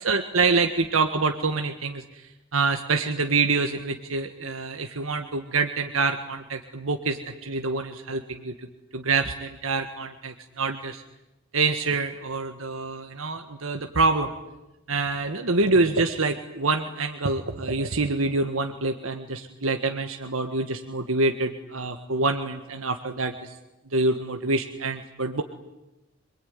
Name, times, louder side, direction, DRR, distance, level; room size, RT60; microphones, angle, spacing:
voice 1, 0.0-2.3 2.5-8.5 8.9-11.0 11.5-14.3 14.9-23.5 23.9-25.4, right 3 dB, 85° right, 5 dB, 1.7 m, -26 dB
26.5 x 22.5 x 9.6 m, 0.98 s
head